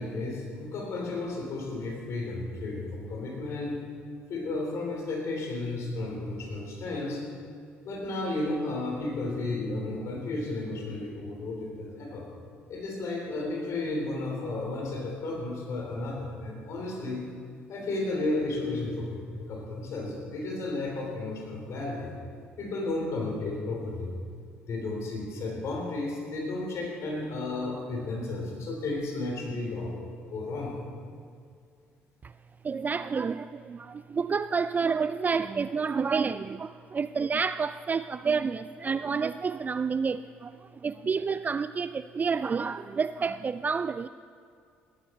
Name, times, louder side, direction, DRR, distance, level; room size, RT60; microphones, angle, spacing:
voice 1, 0.0-3.8 4.3-7.2 7.8-12.3 12.7-17.2 17.7-22.1 22.6-24.1 24.7-30.8, left 2 dB, 55° left, 3.2 m, -33 dB
voice 2, 32.6-44.1, right 5 dB, 30° right, 0.3 m, -29 dB
16.0 x 13.0 x 4.3 m
hypercardioid pair, 55°, 6 cm